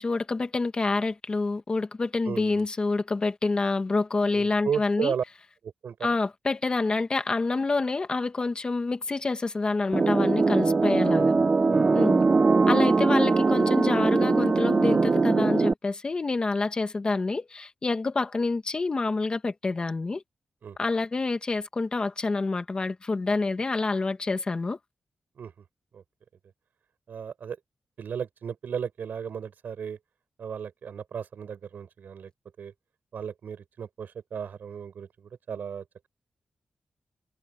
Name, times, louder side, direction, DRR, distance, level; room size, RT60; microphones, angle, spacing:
voice 1, 0.0-5.1 6.0-11.4 11.9-12.2 12.7-20.2 20.8-24.8, left 3 dB, 30° left, 1.5 m, -27 dB
voice 2, 2.3-2.6 4.3-5.2 5.8-5.9 11.1-11.5 20.6-20.8 25.4-25.5 25.9-26.0 27.1-27.6 28.0-30.0 30.4-32.3 32.6-32.7 33.1-36.1, right 7 dB, 75° right, 6.5 m, -34 dB
sound 1, 9.9-15.7, right 4 dB, 30° right, 0.3 m, -21 dB
wide cardioid pair, 165°, 3 cm